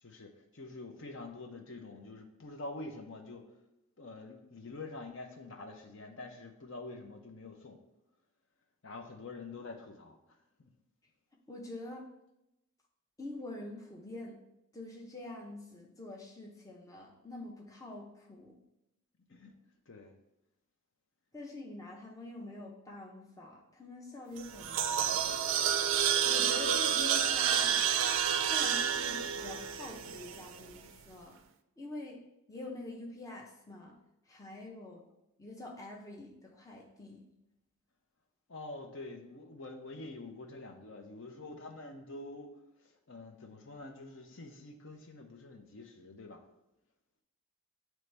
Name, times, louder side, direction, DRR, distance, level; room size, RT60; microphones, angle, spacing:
voice 1, 0.0-3.4 4.0-7.8 8.8-10.2 10.6-10.7 19.3-19.5 19.9-20.2 38.5-42.5 42.8-46.4, left 2 dB, 60° left, 4 dB, 0.7 m, -46 dB
voice 2, 11.5-12.1 13.2-14.4 14.7-18.5 21.3-25.3 26.2-27.9 28.4-31.4 31.8-32.2 32.5-33.9 34.3-35.0 35.4-37.2, left 2 dB, 15° left, -1 dB, 0.6 m, -46 dB
sound 1, 24.4-30.7, right 8 dB, 60° right, 0.4 m, -30 dB
9.2 x 3.1 x 3.3 m, 0.86 s
head